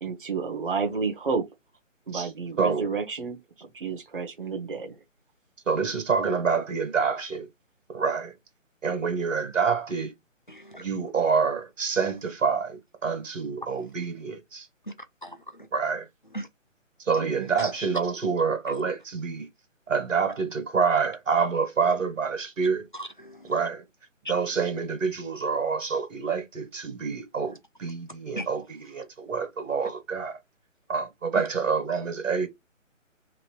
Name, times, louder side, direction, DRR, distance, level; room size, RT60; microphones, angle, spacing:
voice 1, 0.0-1.4 2.1-3.4 3.7-5.0 17.2-17.5, right 5 dB, 40° right, 0.7 m, -30 dB
voice 2, 2.6-2.9 5.7-7.5 7.9-8.3 8.8-10.1 10.8-14.7 15.7-16.1 17.0-19.5 19.9-22.8 23.4-23.8 24.3-30.4 30.9-32.5, right 5 dB, 75° right, 1.4 m, -27 dB
voice 3, 10.5-10.9 15.2-15.7 16.3-16.5 17.6-17.7 22.9-23.5 24.2-24.3 28.4-28.5, equal, 40° left, 0.4 m, -37 dB
3.0 x 2.9 x 3.1 m
hypercardioid pair, 180°, 39 cm